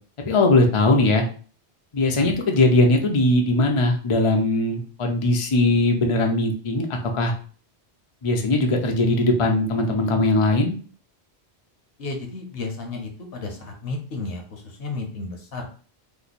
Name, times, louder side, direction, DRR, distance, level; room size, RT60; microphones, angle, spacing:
voice 1, 0.2-1.2 1.9-7.3 8.2-10.7, left 2 dB, 40° left, 2 dB, 0.5 m, -20 dB
voice 2, 12.0-15.8, left 3 dB, 60° left, 2 dB, 1.0 m, -33 dB
3.0 x 2.2 x 4.0 m, 0.41 s
omnidirectional pair, 1.1 m